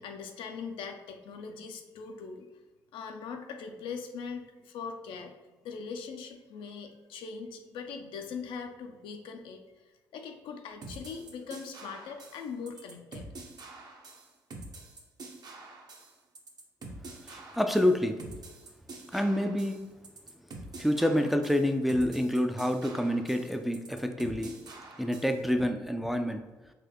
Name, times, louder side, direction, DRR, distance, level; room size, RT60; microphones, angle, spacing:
voice 1, 0.0-2.5 2.9-5.3 5.6-9.6 10.1-13.3, left 5 dB, 70° left, 5 dB, 0.4 m, -41 dB
sound 1, 10.8-25.4, right 2 dB, 50° right, 0.7 m, -46 dB
voice 2, 17.2-18.2 19.1-19.8 20.8-24.6 25.0-26.5, equal, ahead, 6 dB, 0.3 m, -27 dB
4.0 x 2.2 x 2.9 m, 1.2 s
hypercardioid pair, 50°, 9 cm